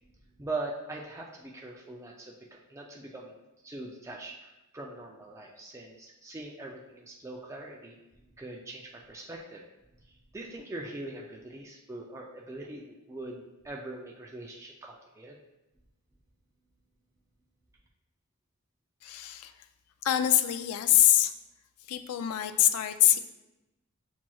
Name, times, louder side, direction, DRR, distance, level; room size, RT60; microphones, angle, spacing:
voice 1, 0.4-3.4 3.6-8.0 8.4-9.6 10.0-15.4, right 2 dB, 15° right, -1 dB, 0.3 m, -42 dB
voice 2, 19.0-19.5 20.0-21.3 21.9-23.2, left 12 dB, 80° left, 10 dB, 0.3 m, -24 dB
7.2 x 2.9 x 2.3 m, 0.98 s
head